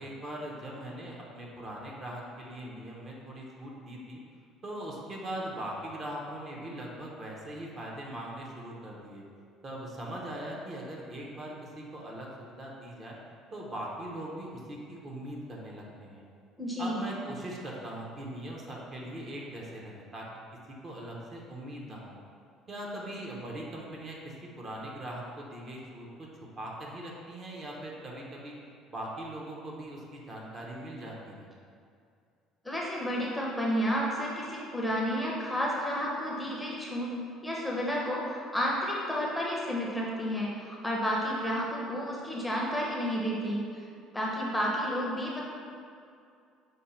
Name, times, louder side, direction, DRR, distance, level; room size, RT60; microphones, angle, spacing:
voice 1, 0.0-4.2 4.6-9.2 9.6-13.2 13.5-16.2 16.8-20.3 20.7-22.2 22.7-26.3 26.6-28.5 28.9-31.5, right 1 dB, 30° right, -2 dB, 0.7 m, -40 dB
voice 2, 16.6-17.0 32.6-37.1 37.4-43.6 44.1-45.4, equal, 5° left, -4 dB, 0.6 m, -31 dB
5.1 x 2.1 x 4.2 m, 2.4 s
cardioid pair, 130°, 0 cm